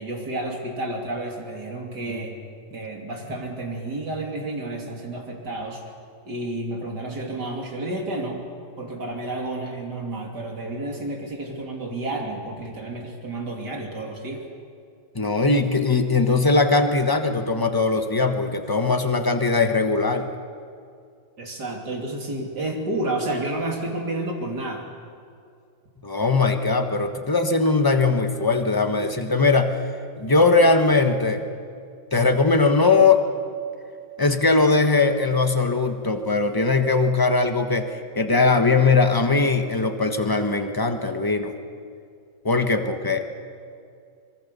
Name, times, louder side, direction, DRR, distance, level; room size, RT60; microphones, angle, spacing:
voice 1, 0.0-2.4 2.7-5.8 6.3-8.4 8.8-14.4 21.4-24.9, right 2 dB, 55° right, 1 dB, 3.6 m, -30 dB
voice 2, 15.1-20.3 26.0-29.8 30.2-31.4 32.1-33.2 34.2-41.5 42.4-43.2, left 3 dB, 15° left, 6 dB, 1.1 m, -20 dB
25.0 x 23.0 x 6.9 m, 2.3 s
omnidirectional pair, 2.1 m